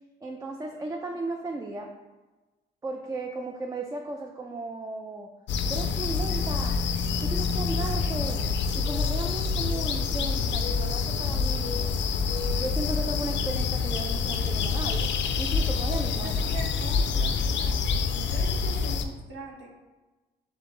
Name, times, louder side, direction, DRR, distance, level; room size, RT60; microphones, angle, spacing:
voice 1, 0.2-1.9 2.8-5.3 5.7-6.8 7.2-8.5 8.7-12.0 12.6-15.1 15.4-16.3, right 2 dB, 20° right, 3 dB, 0.4 m, -35 dB
sound 1, 5.5-19.0, left 5 dB, 70° left, 0.4 m, -27 dB
voice 2, 15.9-17.8 18.3-19.7, right 2 dB, 75° right, -2 dB, 1.1 m, -41 dB
3.7 x 3.5 x 3.8 m, 1.2 s
cardioid pair, 90°, 20 cm